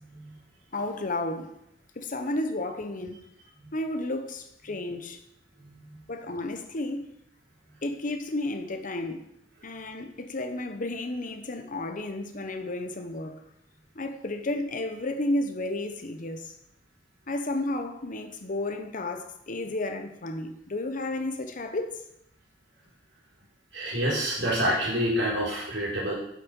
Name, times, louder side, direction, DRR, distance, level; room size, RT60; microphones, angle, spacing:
voice 1, 0.7-1.5 2.0-3.3 3.7-5.2 6.1-7.1 7.8-9.3 9.6-13.4 13.9-16.5 17.3-22.0, left 2 dB, 45° left, 1.0 m, -32 dB
voice 2, 5.6-6.0 23.7-26.1, equal, 80° right, 4.0 m, -28 dB
8.5 x 7.7 x 5.4 m
head